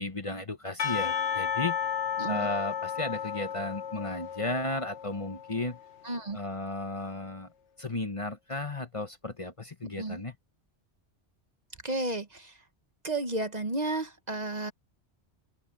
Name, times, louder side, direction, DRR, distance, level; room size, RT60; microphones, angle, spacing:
voice 1, 0.0-1.8 2.3-5.8 6.3-7.5 7.8-10.4, left 2 dB, 30° left, 1.2 m, -34 dB
Percussion / Church bell, 0.8-5.9, left 8 dB, 85° left, 1.4 m, -33 dB
voice 2, 6.0-6.4 9.8-10.2 11.8-12.5 13.0-14.7, right 2 dB, 40° right, 1.2 m, -32 dB
open air
omnidirectional pair, 1.2 m